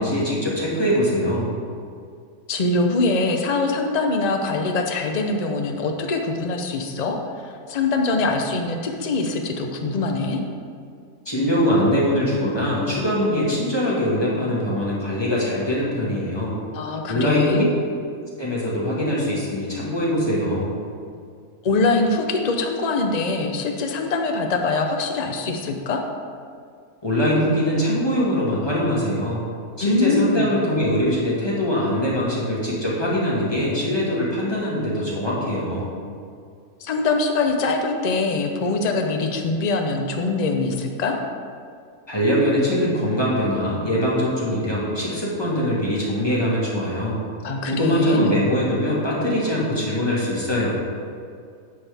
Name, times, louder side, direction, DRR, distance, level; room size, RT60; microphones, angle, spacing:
voice 1, 0.0-1.5 11.2-16.6 17.1-17.6 18.2-20.7 27.0-29.4 29.8-35.9 42.1-47.2 47.7-50.7, equal, 15° left, -7 dB, 1.7 m, -22 dB
voice 2, 2.5-10.4 16.7-17.8 21.6-26.0 29.8-30.5 36.8-41.2 47.4-48.4, left 3 dB, 40° left, 3 dB, 0.6 m, -23 dB
9.8 x 6.1 x 3.5 m, 2.3 s
omnidirectional pair, 1.5 m